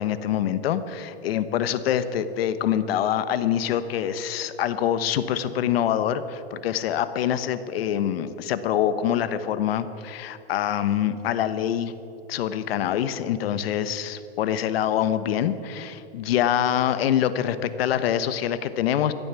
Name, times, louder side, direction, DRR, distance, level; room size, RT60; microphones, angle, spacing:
voice 1, 0.0-11.9 12.3-19.1, left 10 dB, 70° left, 13 dB, 1.1 m, -25 dB
15.5 x 11.0 x 8.3 m, 2.7 s
supercardioid pair, 160°, 31 cm